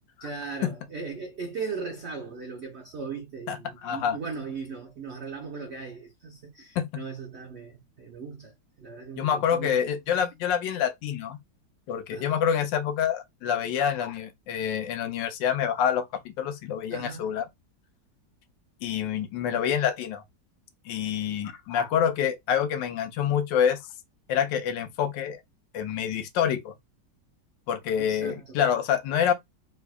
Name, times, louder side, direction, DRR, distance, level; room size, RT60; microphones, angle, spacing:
voice 1, 0.2-9.8 10.1-10.2 12.1-12.4 16.9-17.4 28.0-28.6, right 5 dB, 65° right, 0.6 m, -38 dB
voice 2, 3.8-4.2 6.8-7.0 9.2-11.4 11.9-17.5 18.8-20.2 20.9-23.8 24.3-25.4 25.7-26.7 27.7-29.3, left 8 dB, 85° left, 1.3 m, -27 dB
4.2 x 2.7 x 2.2 m
omnidirectional pair, 1.9 m